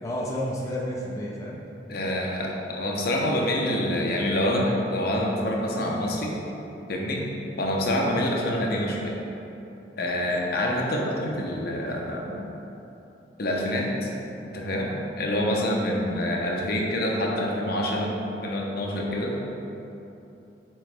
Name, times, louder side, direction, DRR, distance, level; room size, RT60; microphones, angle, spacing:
voice 1, 0.0-1.6, equal, 15° left, -4 dB, 0.5 m, -31 dB
voice 2, 1.9-6.4 6.9-7.2 7.6-9.2 10.0-12.4 13.4-14.1 14.4-18.1 18.4-19.4, left 1 dB, 55° left, -1 dB, 0.8 m, -26 dB
7.7 x 3.9 x 3.3 m, 2.9 s
head